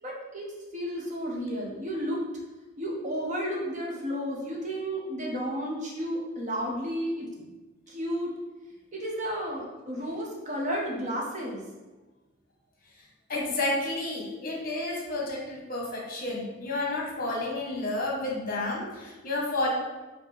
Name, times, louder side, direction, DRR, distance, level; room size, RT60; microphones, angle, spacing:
voice 1, 0.0-0.5 0.7-2.3 2.8-7.3 7.9-8.3 8.9-11.6, equal, 35° right, -2 dB, 0.9 m, -32 dB
voice 2, 13.3-19.7, left 2 dB, 45° left, -2 dB, 1.1 m, -31 dB
5.0 x 2.9 x 3.3 m, 1.2 s
head